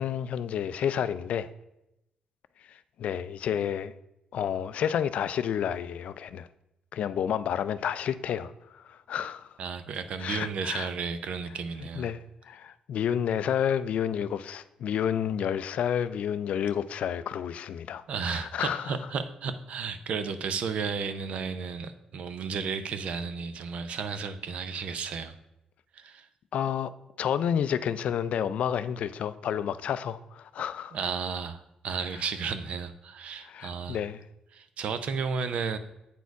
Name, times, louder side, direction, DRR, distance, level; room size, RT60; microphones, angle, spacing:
voice 1, 0.0-1.5 2.7-3.9 4.3-6.5 6.9-9.5 10.2-10.9 11.8-19.0 26.5-26.9 27.2-31.0 33.4-34.2, left 9 dB, 70° left, 14 dB, 0.3 m, -30 dB
voice 2, 9.6-12.1 18.1-25.3 25.9-26.3 30.9-34.0 34.5-35.8, right 5 dB, 65° right, 11 dB, 0.6 m, -33 dB
8.1 x 4.3 x 4.6 m, 0.88 s
cardioid pair, 110°, 2 cm